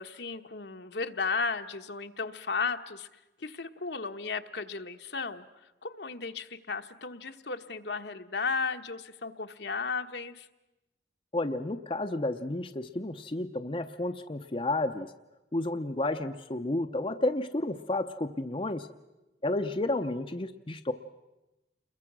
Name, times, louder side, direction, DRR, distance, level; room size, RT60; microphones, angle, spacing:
voice 1, 0.0-3.1 3.4-5.5 5.8-10.5, left 4 dB, 65° left, 7 dB, 1.1 m, -34 dB
voice 2, 11.3-15.1 15.5-18.9 19.4-20.9, left 2 dB, 30° left, 6 dB, 0.7 m, -31 dB
29.5 x 22.0 x 6.1 m, 1.0 s
head